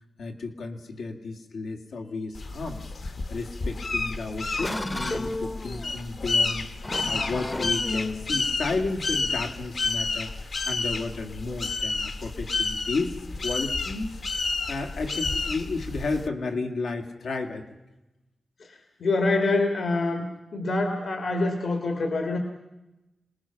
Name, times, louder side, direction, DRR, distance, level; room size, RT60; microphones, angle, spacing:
voice 1, 0.2-13.2 13.4-14.2 14.7-17.6, left 3 dB, 90° left, 3 dB, 2.3 m, -33 dB
sound 1, 2.3-16.3, left 3 dB, 45° left, 0.9 m, -30 dB
sound 2, 3.6-10.2, left 2 dB, 15° left, 0.6 m, -35 dB
voice 2, 18.6-20.2 20.5-22.4, left 2 dB, 60° left, 4 dB, 1.9 m, -26 dB
27.0 x 19.5 x 5.9 m, 0.99 s
wide cardioid pair, 175°, 0 cm